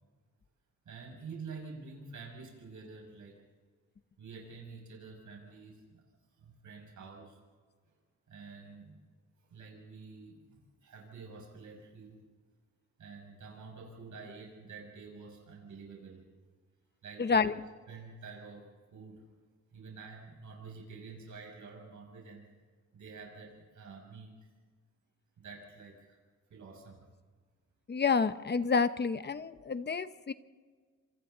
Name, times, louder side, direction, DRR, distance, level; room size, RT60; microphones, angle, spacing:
voice 1, 0.8-3.3 4.2-6.0 6.4-7.4 8.3-9.0 9.5-12.2 13.0-16.2 17.0-17.5 17.9-19.2 19.7-22.5 22.9-24.3 25.4-26.2 26.5-27.0, right 4 dB, 80° right, -1 dB, 6.3 m, -48 dB
voice 2, 17.2-17.5 27.9-30.3, left 5 dB, 35° left, 11 dB, 0.9 m, -29 dB
28.5 x 27.0 x 4.0 m, 1.5 s
wide cardioid pair, 130°, 29 cm